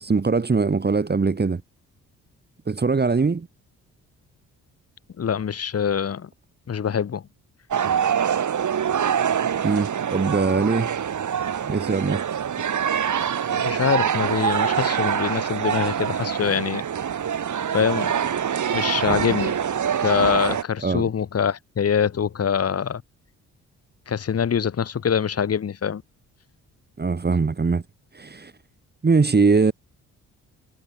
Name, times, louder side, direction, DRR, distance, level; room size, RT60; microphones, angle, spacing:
voice 1, 0.0-1.6 2.7-3.5 9.6-10.9 11.7-12.2 20.8-21.1 27.0-27.8 28.1-28.5 29.0-29.7, right 4 dB, 25° right, 1.9 m, -21 dB
voice 2, 5.2-6.3 6.7-7.2 13.5-16.9 17.7-18.2 18.7-19.6 20.0-23.0 24.1-26.0, left 7 dB, 40° left, 1.3 m, -24 dB
sound 1, 7.7-20.6, right 8 dB, 55° right, 3.0 m, -24 dB
supercardioid pair, 60°, 36 cm